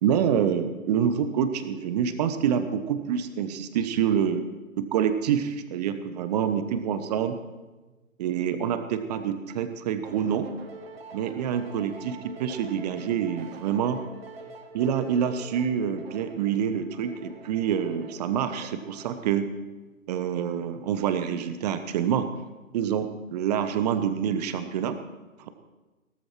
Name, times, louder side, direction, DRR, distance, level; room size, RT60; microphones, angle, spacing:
voice 1, 0.0-4.5 4.8-7.4 8.2-10.5 11.1-14.0 14.7-19.5 20.1-22.3 22.7-25.0, right 8 dB, 30° right, 10 dB, 1.0 m, -27 dB
sound 1, 10.0-19.4, right 4 dB, 45° right, 1.8 m, -45 dB
17.0 x 13.5 x 4.5 m, 1.2 s
figure-of-eight pair, 125°, 40 cm